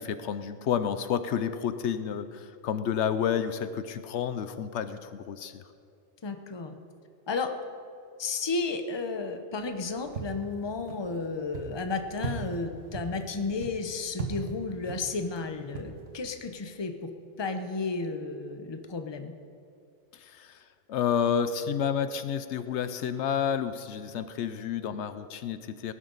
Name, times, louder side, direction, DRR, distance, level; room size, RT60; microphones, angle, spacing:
voice 1, 0.0-5.6 20.1-20.6 20.9-25.9, left 8 dB, 75° left, 11 dB, 0.9 m, -30 dB
voice 2, 6.2-6.7 7.3-7.5 8.2-17.1 17.4-19.3, left 4 dB, 25° left, 6 dB, 0.8 m, -33 dB
sound 1, 9.6-16.3, right 4 dB, 85° right, 1.7 m, -40 dB
19.0 x 11.5 x 4.0 m, 2.5 s
omnidirectional pair, 1.2 m